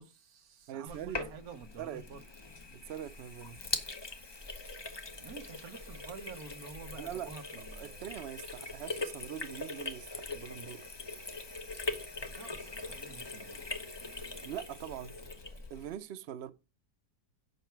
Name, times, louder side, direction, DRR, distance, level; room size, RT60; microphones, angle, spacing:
voice 1, 0.0-2.2 5.2-8.1 12.2-13.7, right 5 dB, 60° right, 1.5 m, -49 dB
voice 2, 0.7-1.2 1.8-2.0 2.7-3.6 6.9-11.0 14.4-15.2 15.7-16.5, right 10 dB, 80° right, 0.5 m, -43 dB
Sink (filling or washing), 0.9-15.9, left 3 dB, 30° left, 0.4 m, -42 dB
8.1 x 5.7 x 4.5 m
omnidirectional pair, 1.9 m